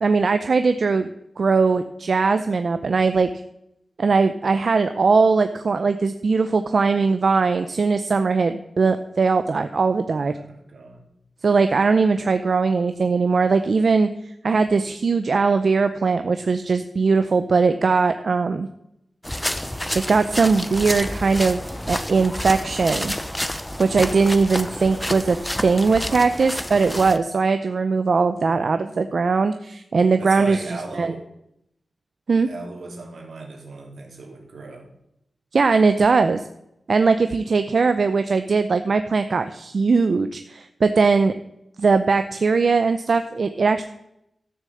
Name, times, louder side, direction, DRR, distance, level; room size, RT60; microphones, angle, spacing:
voice 1, 0.0-1.1 1.4-3.3 4.0-10.3 11.4-14.1 14.4-18.7 19.9-21.6 21.9-23.1 23.8-25.4 25.6-30.6 31.0-31.1 32.3-32.5 35.5-36.4 36.9-41.3 41.8-43.8, right 4 dB, 60° right, 9 dB, 0.6 m, -20 dB
voice 2, 10.3-11.0 28.4-28.6 30.2-31.2 32.4-34.9, right 3 dB, 80° right, 1 dB, 3.1 m, -36 dB
sound 1, 19.2-27.2, left 1 dB, 10° left, 0.7 m, -29 dB
13.0 x 6.6 x 7.7 m, 0.81 s
wide cardioid pair, 120°, 0 cm